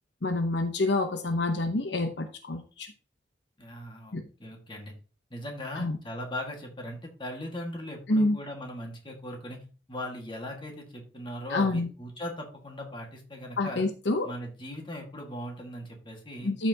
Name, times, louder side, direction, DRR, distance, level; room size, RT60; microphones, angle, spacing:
voice 1, 0.2-2.9 4.1-4.2 5.8-6.0 8.1-8.4 11.5-11.9 13.6-14.3 16.4-16.7, left 2 dB, 65° left, 6 dB, 0.9 m, -27 dB
voice 2, 3.6-4.1 4.4-4.9 5.3-9.6 9.9-13.9 14.2-16.5, left 1 dB, 25° left, 1 dB, 1.8 m, -39 dB
13.0 x 5.8 x 2.9 m, 0.37 s
head